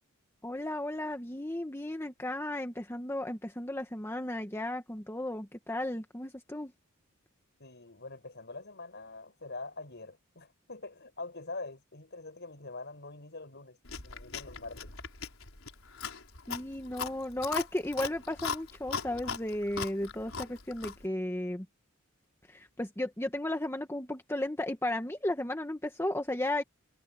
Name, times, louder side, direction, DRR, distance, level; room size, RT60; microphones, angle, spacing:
voice 1, 0.4-6.7 16.5-21.7 22.5-26.6, left 1 dB, 10° left, 1.3 m, -34 dB
voice 2, 7.6-13.8 14.0-14.9, left 3 dB, 55° left, 6.6 m, -44 dB
Chewing mastication, 13.9-21.1, left 5 dB, 70° left, 5.3 m, -39 dB
head